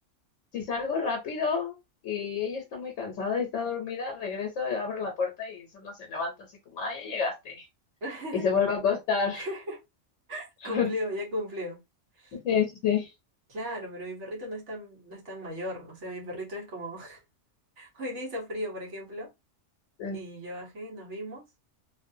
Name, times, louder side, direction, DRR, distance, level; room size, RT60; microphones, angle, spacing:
voice 1, 0.5-1.7 2.0-6.3 6.7-7.6 8.3-9.5 10.6-10.8 12.4-13.1 20.0-20.2, left 6 dB, 80° left, 1.2 m, -29 dB
voice 2, 8.0-8.4 9.3-9.8 10.3-11.8 12.2-12.4 13.5-17.2 17.8-19.3 20.1-21.4, equal, 70° right, 1.5 m, -36 dB
3.3 x 2.4 x 2.6 m
omnidirectional pair, 1.3 m